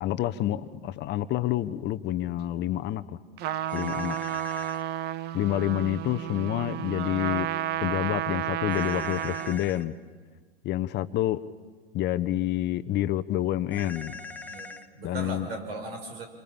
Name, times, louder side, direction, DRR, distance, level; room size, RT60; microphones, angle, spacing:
voice 1, 0.0-3.0 3.7-4.2 5.3-7.5 7.8-9.9 10.6-11.4 11.9-14.2 15.0-15.5, left 13 dB, 35° left, 12 dB, 1.1 m, -28 dB
Trumpet, 3.4-9.7, right 12 dB, 35° right, 0.8 m, -32 dB
sound 1, 3.7-4.8 8.7-9.8 13.7-14.9, left 3 dB, 5° left, 1.6 m, -41 dB
voice 2, 14.4-16.3, right 2 dB, 70° right, 5 dB, 5.9 m, -38 dB
29.0 x 26.0 x 7.3 m, 1.5 s
hypercardioid pair, 95°, 30 cm